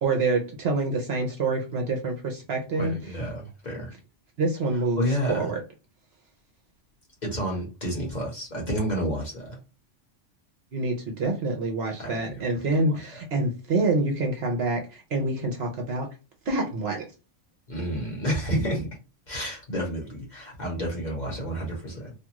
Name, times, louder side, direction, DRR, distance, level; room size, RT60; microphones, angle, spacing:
voice 1, 0.0-2.9 4.4-5.0 5.3-5.6 10.7-14.8 15.1-16.1 16.5-17.1, right 2 dB, 60° right, 2 dB, 0.9 m, -26 dB
voice 2, 2.7-3.9 5.0-5.5 7.2-9.6 12.0-13.2 17.7-18.9 19.3-22.1, equal, 40° left, -2 dB, 1.0 m, -30 dB
2.6 x 2.3 x 2.9 m, 0.31 s
omnidirectional pair, 1.3 m